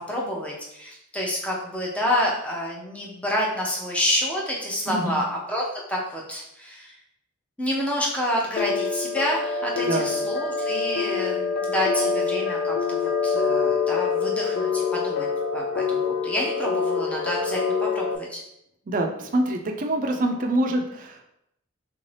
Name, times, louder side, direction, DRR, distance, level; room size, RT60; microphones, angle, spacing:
voice 1, 0.1-7.0 7.6-15.3 15.5-18.4, equal, 5° left, -3 dB, 0.6 m, -28 dB
voice 2, 4.9-5.2 9.9-10.1 18.9-21.2, right 1 dB, 40° right, 3 dB, 0.4 m, -25 dB
sound 1, 8.6-18.2, left 5 dB, 60° left, 0.4 m, -25 dB
3.5 x 2.7 x 3.2 m, 0.79 s
head